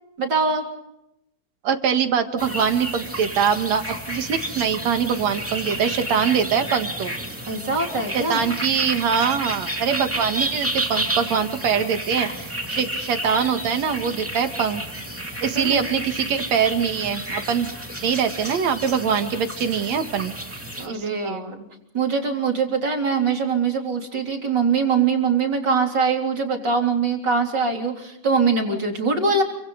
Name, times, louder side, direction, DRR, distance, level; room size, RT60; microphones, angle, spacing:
voice 1, 0.2-0.6 7.5-8.4 15.6-15.9 20.8-21.6 21.9-29.4, right 5 dB, 35° right, 1 dB, 3.9 m, -22 dB
voice 2, 1.6-7.1 8.1-14.8 15.4-17.7 18.0-20.3 20.9-21.4, right 7 dB, 65° right, 7 dB, 2.8 m, -23 dB
sound 1, 2.4-20.9, right 1 dB, 5° right, 2.2 m, -31 dB
29.5 x 25.0 x 4.0 m, 0.84 s
omnidirectional pair, 3.4 m